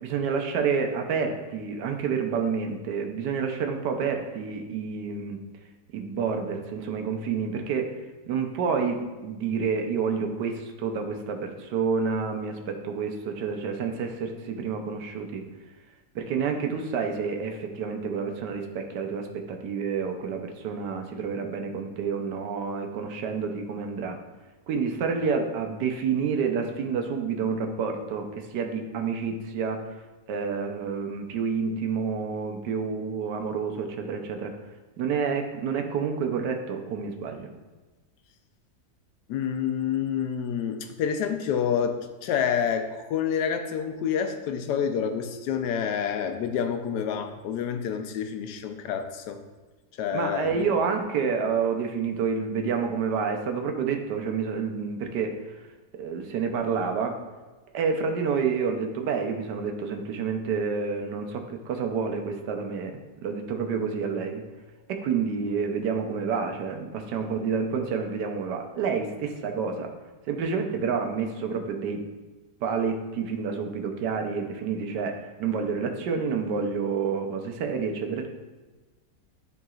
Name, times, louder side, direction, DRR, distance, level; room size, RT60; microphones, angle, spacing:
voice 1, 0.0-5.4 5.9-8.0 8.3-15.4 16.1-24.2 24.7-30.0 30.3-34.5 35.0-37.5 50.1-55.6 56.0-57.2 57.7-64.4 64.9-69.9 70.3-72.0 72.6-78.3, right 5 dB, 80° right, 4 dB, 1.3 m, -29 dB
voice 2, 39.3-49.4 50.0-50.6, left 7 dB, 80° left, 6 dB, 1.2 m, -28 dB
10.0 x 3.9 x 2.4 m, 1.2 s
omnidirectional pair, 1.8 m